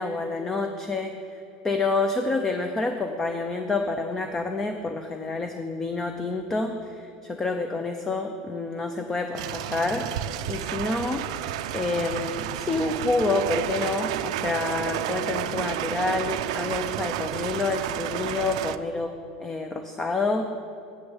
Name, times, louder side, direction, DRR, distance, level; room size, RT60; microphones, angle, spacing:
voice 1, 0.0-1.4 1.6-11.4 11.7-19.1 19.4-20.5, left 3 dB, 10° left, 6 dB, 0.4 m, -28 dB
sound 1, 9.3-18.8, right 11 dB, 80° right, 0.3 m, -31 dB
8.0 x 6.5 x 7.1 m, 2.7 s
cardioid pair, 175°, 3 cm